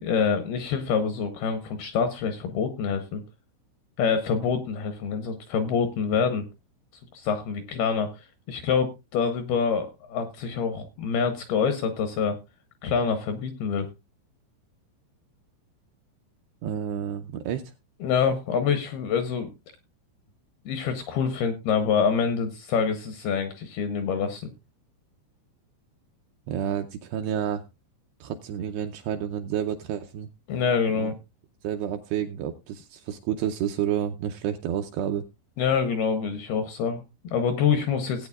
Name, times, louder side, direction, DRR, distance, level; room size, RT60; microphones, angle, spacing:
voice 1, 0.0-3.2 4.0-6.5 7.1-8.1 8.5-12.4 12.8-13.9 18.0-19.5 20.7-24.5 30.5-31.2 35.6-38.3, left 6 dB, 80° left, 8 dB, 2.4 m, -26 dB
voice 2, 16.6-17.7 26.5-27.6 28.2-30.3 30.9-31.1 31.6-35.2, right 9 dB, 80° right, 6 dB, 2.4 m, -30 dB
18.0 x 8.8 x 2.4 m, 0.24 s
omnidirectional pair, 5.4 m